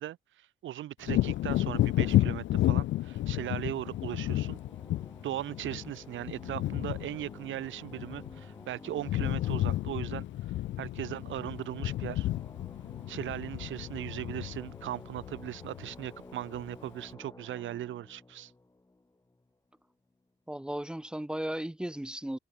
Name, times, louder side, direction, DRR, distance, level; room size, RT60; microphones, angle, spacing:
voice 1, 0.0-4.6 5.2-10.2 10.8-12.3 13.1-18.5, right 13 dB, 75° right, 1.6 m, -38 dB
Wind / Thunder, 1.0-8.6 8.9-16.1 16.5-16.7, left 15 dB, 70° left, 0.5 m, -31 dB
sound 1, 1.6-19.8, left 2 dB, 15° left, 7.9 m, -52 dB
voice 2, 20.5-22.4, right 1 dB, 5° right, 0.4 m, -35 dB
cardioid pair, 90°, 20 cm